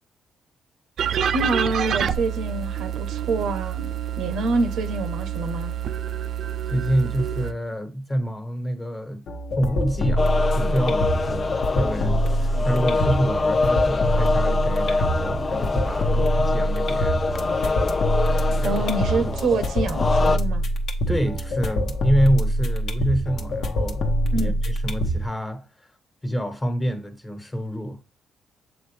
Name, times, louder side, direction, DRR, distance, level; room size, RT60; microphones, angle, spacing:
sound 1, 1.0-7.5, right 9 dB, 60° right, 0.5 m, -27 dB
voice 1, 1.3-3.9 4.2-5.7 18.6-20.7 24.3-24.6, right 2 dB, 80° right, 0.9 m, -26 dB
voice 2, 6.7-9.2 9.6-10.3 10.6-11.5 11.7-17.2 18.6-18.8 19.2-19.3 21.1-24.0 24.3-25.9 26.2-28.0, equal, 15° left, 1.4 m, -27 dB
sound 2, 9.3-25.3, equal, 65° left, 1.1 m, -24 dB
sound 3, 10.2-20.4, left 3 dB, 35° left, 0.5 m, -25 dB
7.5 x 3.9 x 3.3 m
cardioid pair, 90°, 0 cm